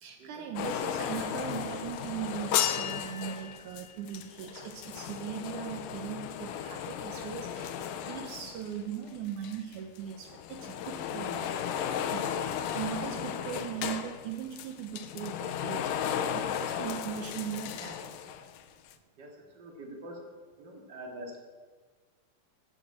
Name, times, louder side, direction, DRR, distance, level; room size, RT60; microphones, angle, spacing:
voice 1, 0.0-7.7 8.1-11.7 12.1-12.3 12.7-18.1, right 9 dB, 75° right, 3 dB, 2.3 m, -39 dB
sound 1, 0.6-9.2 9.4-18.6 18.9-19.0, left 9 dB, 85° left, 2.3 m, -35 dB
voice 2, 19.2-20.2 20.6-21.4, right 1 dB, 35° right, 0 dB, 2.4 m, -45 dB
15.0 x 7.1 x 7.5 m, 1.5 s
omnidirectional pair, 3.7 m